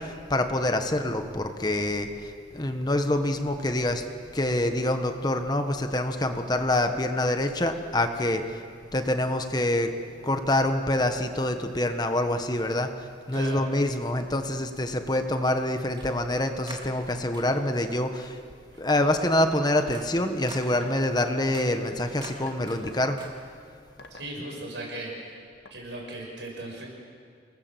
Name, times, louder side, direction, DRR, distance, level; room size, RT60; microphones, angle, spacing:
voice 1, 0.0-4.0 4.3-8.6 8.9-9.9 10.2-18.4 18.8-23.2, left 1 dB, 25° left, 6 dB, 1.3 m, -26 dB
sound 1, 10.6-10.7 12.4-12.5 13.5-13.6 16.0-16.3 16.7-17.8 18.2-18.5 18.9-23.8, right 2 dB, 25° right, 2.7 m, -47 dB
voice 2, 13.3-13.6 18.7-18.8 24.1-25.4 25.7-26.9, right 1 dB, 85° right, -1 dB, 7.4 m, -37 dB
sound 2, 20.8-21.2 22.5-23.1 24.0-24.4 25.7-25.8, left 3 dB, 85° left, 1.9 m, -46 dB
28.0 x 19.5 x 7.9 m, 2.2 s
head